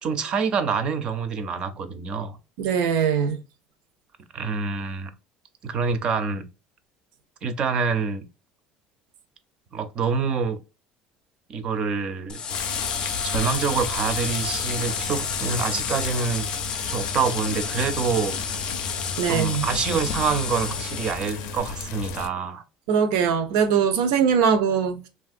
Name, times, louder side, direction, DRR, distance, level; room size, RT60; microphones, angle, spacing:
voice 1, 0.0-2.4 4.3-5.1 5.6-6.5 7.4-8.2 9.7-10.6 11.5-12.4 13.2-16.5 16.9-18.4 19.2-22.6, right 5 dB, 30° right, 0.4 m, -26 dB
voice 2, 2.6-3.4 19.2-19.7 22.9-25.1, right 7 dB, 90° right, 0.6 m, -21 dB
sound 1, 12.3-21.6, left 6 dB, 30° left, 0.5 m, -31 dB
sound 2, 12.5-22.3, left 5 dB, 80° left, 0.5 m, -33 dB
3.2 x 2.4 x 2.4 m
cardioid pair, 165°, 3 cm